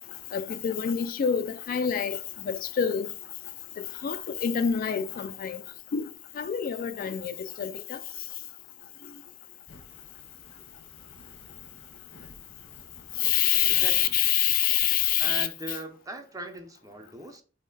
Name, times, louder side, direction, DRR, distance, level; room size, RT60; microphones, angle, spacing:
voice 1, 0.3-2.2 2.5-3.1 4.0-5.6 5.9-6.0 6.4-8.0 13.2-15.5, left 9 dB, 45° left, 0.3 m, -26 dB
Fire, 9.7-14.3, left 2 dB, 85° left, 1.1 m, -53 dB
voice 2, 13.7-14.1 15.2-17.4, right 2 dB, 20° right, 0.6 m, -39 dB
3.7 x 3.1 x 4.0 m
head